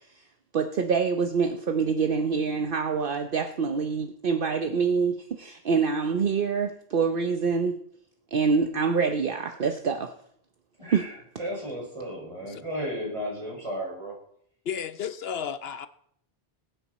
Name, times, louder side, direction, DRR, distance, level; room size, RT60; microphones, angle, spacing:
voice 1, 0.5-7.8 8.3-10.1 10.9-11.0, right 5 dB, 60° right, 1.0 m, -25 dB
voice 2, 10.8-14.2, equal, 30° right, 5.7 m, -34 dB
voice 3, 14.7-15.9, left 7 dB, 75° left, 1.0 m, -33 dB
20.0 x 9.2 x 4.2 m
omnidirectional pair, 1.0 m